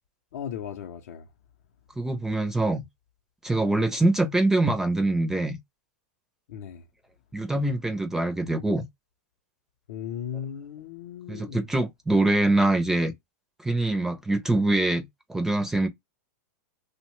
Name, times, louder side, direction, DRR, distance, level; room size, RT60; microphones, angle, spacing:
voice 1, 0.3-1.3 6.5-6.8 9.9-11.7, left 9 dB, 70° left, 0.5 m, -36 dB
voice 2, 2.0-2.8 3.4-5.6 7.3-8.9 11.3-13.1 13.6-15.9, right 2 dB, 5° right, 0.4 m, -24 dB
2.8 x 2.1 x 3.0 m
supercardioid pair, 150°, 9 cm